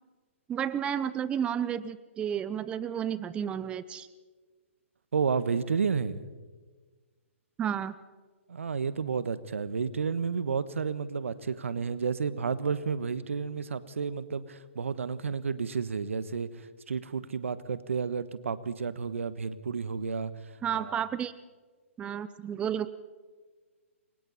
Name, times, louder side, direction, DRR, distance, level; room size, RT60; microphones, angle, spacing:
voice 1, 0.5-4.1 7.6-7.9 20.6-21.3 22.0-22.9, right 9 dB, 15° right, 16 dB, 0.6 m, -31 dB
voice 2, 5.1-6.3 8.5-20.3 20.7-21.0, right 5 dB, 75° right, 14 dB, 1.3 m, -31 dB
28.5 x 23.0 x 4.2 m, 1.4 s
hypercardioid pair, 130°, 7 cm